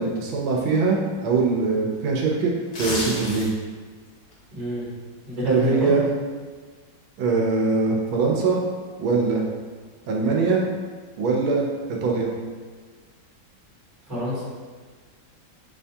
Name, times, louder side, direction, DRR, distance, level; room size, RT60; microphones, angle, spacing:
voice 1, 0.0-2.5 2.8-3.5 5.4-6.1 7.2-8.6 9.0-9.4 10.1-10.6 11.2-12.3, right 4 dB, 85° right, -1 dB, 1.4 m, -22 dB
sound 1, 2.6-3.8 4.2-4.3, left 1 dB, 60° left, 1.1 m, -30 dB
voice 2, 4.5-4.8 5.3-5.9 14.1-14.4, left 1 dB, 25° right, -10 dB, 1.4 m, -28 dB
5.5 x 2.6 x 2.2 m, 1.5 s
omnidirectional pair, 2.1 m